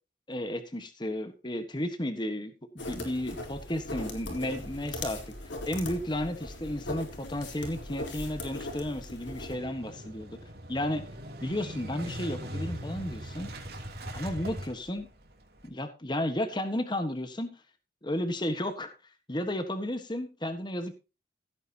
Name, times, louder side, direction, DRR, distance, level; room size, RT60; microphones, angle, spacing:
voice 1, 0.3-5.2 5.7-10.3 10.7-11.0 11.4-13.5 14.1-15.1 15.6-17.5 18.0-18.9 19.3-20.9, left 1 dB, 25° left, 8 dB, 1.4 m, -33 dB
sound 1, 2.8-9.5, left 1 dB, 85° left, 3.9 m, -39 dB
Motorcycle / Engine starting, 8.5-15.7, right 1 dB, 60° right, 3.0 m, -41 dB
16.0 x 9.2 x 2.9 m, 0.30 s
head